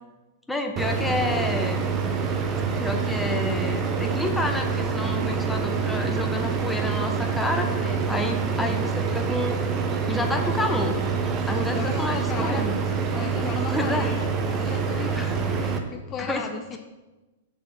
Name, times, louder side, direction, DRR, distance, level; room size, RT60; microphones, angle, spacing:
voice 1, 0.5-1.8 2.7-7.7 8.1-9.6 10.1-11.0 11.4-12.8 13.7-14.1 14.9-15.4 16.2-16.5, left 1 dB, 5° left, 4 dB, 0.8 m, -29 dB
sound 1, 0.8-15.8, right 5 dB, 25° right, 0.8 m, -26 dB
voice 2, 11.7-12.6 13.1-16.8, left 6 dB, 25° left, 5 dB, 0.5 m, -36 dB
6.4 x 4.1 x 6.4 m, 1.1 s
hypercardioid pair, 135°, 0 cm